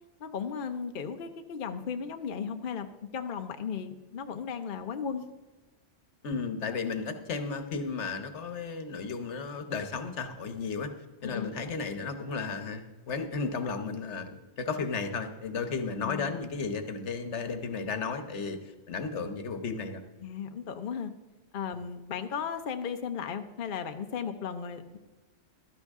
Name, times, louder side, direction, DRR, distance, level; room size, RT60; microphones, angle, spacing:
voice 1, 0.2-2.9 3.1-5.2 11.2-11.5 16.0-16.4 20.2-21.1 21.5-25.0, left 7 dB, 55° left, 7 dB, 0.8 m, -35 dB
voice 2, 6.2-10.9 11.2-18.6 18.9-20.0, left 4 dB, 80° left, 8 dB, 1.3 m, -34 dB
15.0 x 12.5 x 3.6 m, 1.2 s
omnidirectional pair, 1.2 m